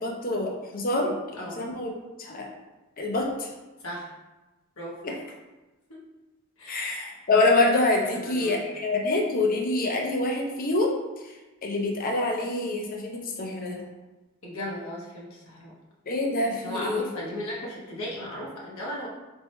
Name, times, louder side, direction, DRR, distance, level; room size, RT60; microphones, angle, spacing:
voice 1, 0.0-1.1 1.6-1.9 2.3-2.5 3.0-3.3 5.0-5.1 6.7-10.9 11.6-13.8 16.1-17.1, left 2 dB, 40° left, 0 dB, 0.7 m, -26 dB
voice 2, 8.0-8.6 14.4-15.7 16.6-19.1, equal, 70° left, -4 dB, 1.1 m, -36 dB
4.2 x 3.5 x 3.1 m, 1.1 s
head